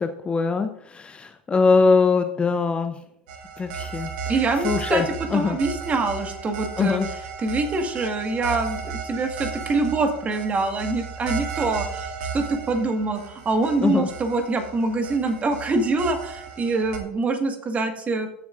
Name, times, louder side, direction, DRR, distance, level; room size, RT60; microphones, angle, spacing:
voice 1, 0.0-3.0 3.6-4.1 4.6-5.6 6.8-7.1 13.8-14.1, left 4 dB, 20° left, 7 dB, 0.7 m, -22 dB
sound 1, 3.3-17.0, right 6 dB, 60° right, 1.7 m, -34 dB
voice 2, 4.3-5.0 5.3-7.0 7.4-18.3, right 3 dB, 25° right, 6 dB, 1.7 m, -25 dB
15.5 x 7.0 x 2.5 m, 0.74 s
figure-of-eight pair, 85°, 5 cm